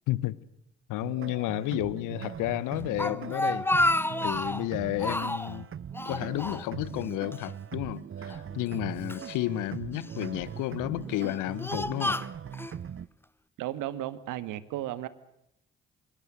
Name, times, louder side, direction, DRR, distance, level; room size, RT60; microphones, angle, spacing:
voice 1, 0.1-0.4 0.9-3.7 4.2-5.7 6.0-12.2, left 17 dB, 75° left, 1.3 m, -32 dB
sound 1, 1.0-13.1, right 8 dB, 40° right, 0.9 m, -40 dB
Speech, 2.7-4.7 5.0-5.6 5.9-7.1 7.3-7.5 8.3-9.3 10.0-10.4 11.1-12.7, left 1 dB, 5° left, 1.1 m, -30 dB
voice 2, 13.6-15.1, right 13 dB, 75° right, 1.8 m, -34 dB
25.5 x 23.5 x 6.5 m
hypercardioid pair, 45°, 31 cm